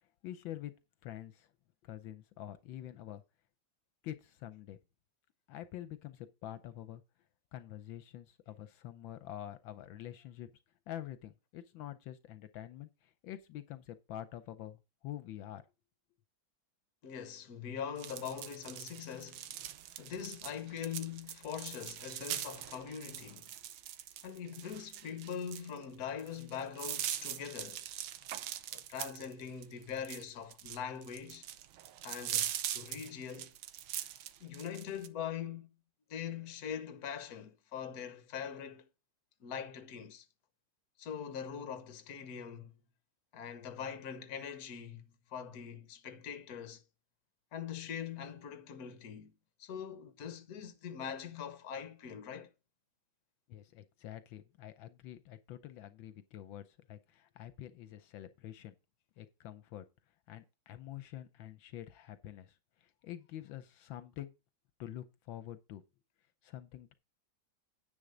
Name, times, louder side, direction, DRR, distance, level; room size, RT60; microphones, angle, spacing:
voice 1, 0.2-0.7 1.0-1.5 1.8-3.2 4.0-4.8 5.5-7.0 7.5-10.5 10.9-15.6 53.5-58.7 59.2-59.8 60.3-64.3 64.8-65.8 66.4-66.9, left 12 dB, 80° left, 1.4 m, -46 dB
voice 2, 17.0-19.5 20.0-23.5 24.2-27.9 28.7-31.5 32.0-33.5 34.4-35.7 36.1-38.9 39.4-40.3 41.0-42.8 43.3-46.8 47.5-49.3 49.6-52.5, left 8 dB, 55° left, 1.4 m, -42 dB
sound 1, 18.0-35.1, right 11 dB, 85° right, 1.5 m, -42 dB
10.0 x 7.3 x 3.8 m
omnidirectional pair, 2.1 m